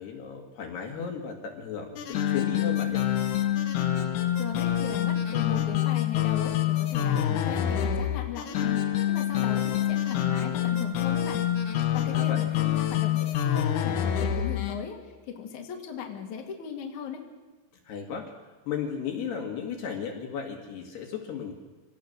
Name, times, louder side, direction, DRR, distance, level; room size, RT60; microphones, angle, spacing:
voice 1, 0.0-3.0 12.1-12.5 17.9-18.3 18.7-21.5, left 6 dB, 65° left, 1 dB, 3.9 m, -35 dB
sound 1, 2.0-14.8, left 11 dB, 80° left, 1.7 m, -26 dB
voice 2, 4.4-11.5 11.9-15.0 15.3-17.3, left 7 dB, 45° left, 1 dB, 3.1 m, -37 dB
26.5 x 18.0 x 6.7 m, 1.2 s
omnidirectional pair, 5.4 m